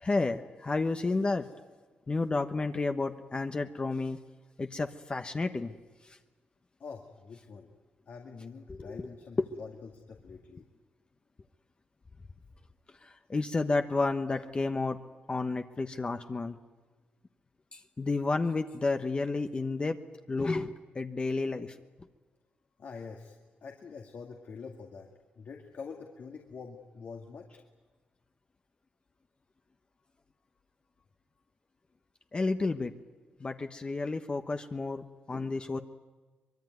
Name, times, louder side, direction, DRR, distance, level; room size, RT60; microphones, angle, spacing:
voice 1, 0.0-1.5 2.1-4.2 4.6-5.7 6.0-6.2 8.7-9.1 13.0-15.0 15.3-16.6 17.7-20.0 20.3-21.7 32.3-32.9 33.4-35.8, left 3 dB, 30° left, 6 dB, 1.1 m, -31 dB
voice 2, 6.8-7.7 8.1-10.6 22.8-25.1 25.4-27.5, left 5 dB, 65° left, 1 dB, 2.1 m, -45 dB
24.0 x 22.0 x 9.4 m, 1.4 s
cardioid pair, 90°, 3 cm